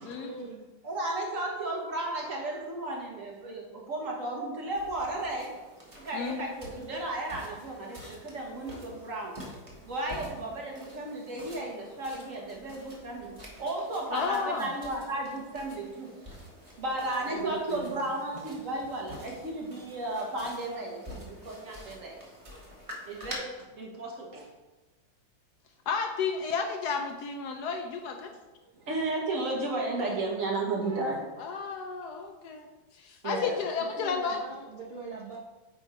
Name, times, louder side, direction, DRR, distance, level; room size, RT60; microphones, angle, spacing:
voice 1, 0.2-0.7 14.4-14.5 17.2-18.0 33.8-35.4, right 4 dB, 70° right, -3 dB, 0.5 m, -41 dB
voice 2, 0.8-5.5 6.0-9.3 9.8-16.1 16.8-22.2 23.1-23.5 23.8-24.5 28.7-31.2 33.2-33.6, right 2 dB, 50° right, -1 dB, 1.5 m, -34 dB
sound 1, 4.7-23.3, equal, 20° right, 1.2 m, -48 dB
voice 3, 14.1-14.7 25.9-28.3 31.4-32.7 32.9-34.4, left 5 dB, 70° left, 4 dB, 1.0 m, -32 dB
8.1 x 3.6 x 4.9 m, 1.2 s
omnidirectional pair, 2.0 m